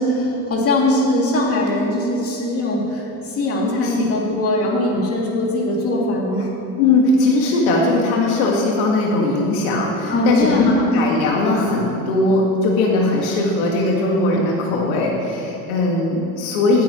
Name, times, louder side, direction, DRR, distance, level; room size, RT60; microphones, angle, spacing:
voice 1, 0.0-6.5 10.1-10.9, left 1 dB, 35° left, -3 dB, 2.6 m, -20 dB
voice 2, 6.8-16.8, left 2 dB, 80° left, -2 dB, 1.7 m, -19 dB
19.0 x 8.4 x 3.0 m, 2.7 s
supercardioid pair, 115°, 42 cm